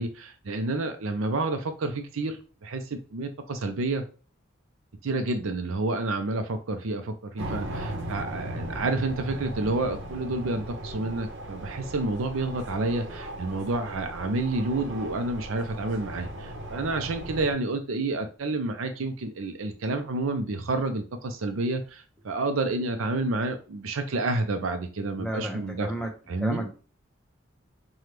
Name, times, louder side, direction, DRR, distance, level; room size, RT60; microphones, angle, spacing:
voice 1, 0.0-4.0 5.0-25.9 26.3-26.6, right 2 dB, 85° right, 6 dB, 0.6 m, -29 dB
sound 1, 7.4-17.5, right 1 dB, 60° right, 1.0 m, -37 dB
voice 2, 25.1-26.1 26.4-26.7, right 1 dB, 5° left, 1 dB, 0.6 m, -32 dB
5.7 x 2.3 x 3.3 m, 0.37 s
head